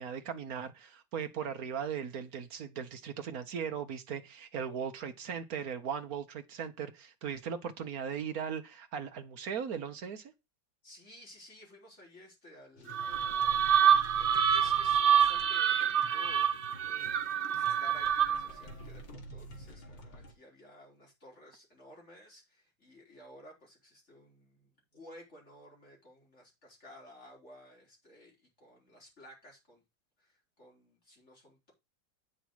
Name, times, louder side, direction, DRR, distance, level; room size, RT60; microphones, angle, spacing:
voice 1, 0.0-10.3, right 7 dB, 55° right, 1.6 m, -38 dB
voice 2, 10.8-13.8 14.1-17.2 17.5-29.8 30.2-31.7, left 1 dB, 35° left, 4.9 m, -55 dB
Indian reality, 12.8-20.3, equal, 85° left, 2.7 m, -49 dB
sound 1, 12.9-18.6, right 8 dB, 70° right, 0.5 m, -27 dB
8.8 x 6.3 x 4.7 m
omnidirectional pair, 2.0 m